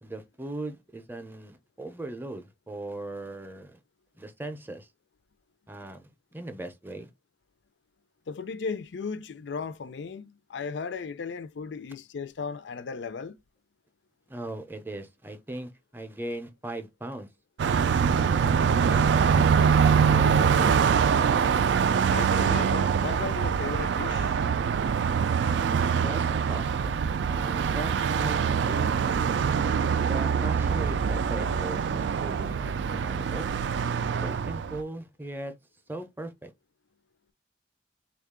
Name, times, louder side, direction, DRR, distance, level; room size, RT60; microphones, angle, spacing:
voice 1, 0.0-3.8 4.1-4.9 5.7-7.1 14.3-17.3 18.1-19.6 19.9-20.8 25.9-28.4 28.7-28.9 30.0-33.5 34.2-35.5 35.9-36.5, right 1 dB, 10° right, 0.5 m, -39 dB
voice 2, 8.3-13.4 22.1-24.3, left 5 dB, 85° left, 0.4 m, -36 dB
Car passing by, 17.6-34.8, right 6 dB, 80° right, 0.3 m, -24 dB
3.5 x 2.4 x 3.6 m
head